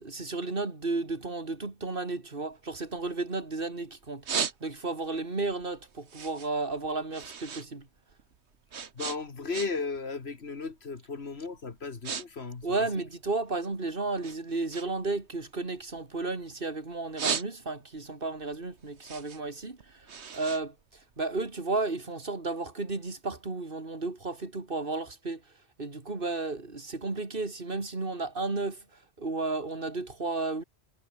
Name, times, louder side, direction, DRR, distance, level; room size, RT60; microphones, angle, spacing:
voice 1, 0.0-4.2 4.6-7.9 12.6-20.7 21.2-25.4 25.8-28.8 29.2-30.6, right 3 dB, 55° right, 3.1 m, -33 dB
sound 1, 2.5-3.6 4.0-5.1 5.5-7.7 8.0-10.0 10.3-10.6 11.2-11.4 11.7-12.2 12.5-13.7 14.2-16.5 16.9-18.0 18.4-21.5, right 6 dB, 80° right, 1.6 m, -36 dB
voice 2, 9.0-12.9, left 4 dB, 70° left, 2.2 m, -35 dB
omnidirectional pair, 1.1 m